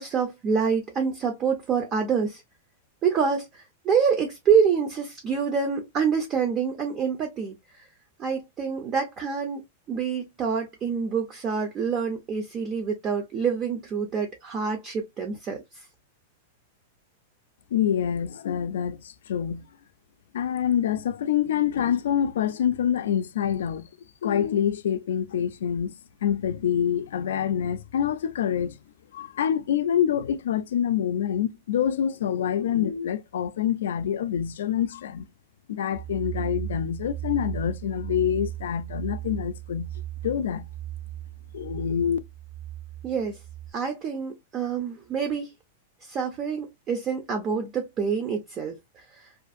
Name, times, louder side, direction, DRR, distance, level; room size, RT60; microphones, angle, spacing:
voice 1, 0.0-2.4 3.0-7.6 8.2-15.6 43.0-43.4 43.7-45.5 46.1-48.8, right 6 dB, 25° right, 0.4 m, -26 dB
voice 2, 17.7-19.7 20.3-23.9 24.2-25.9 26.2-28.8 29.1-35.3 35.7-39.9 40.2-40.7 41.5-42.2, left 9 dB, 85° left, 0.3 m, -26 dB
sound 1, 35.9-43.7, right 13 dB, 75° right, 0.9 m, -36 dB
2.5 x 2.4 x 2.4 m
supercardioid pair, 165°, 0 cm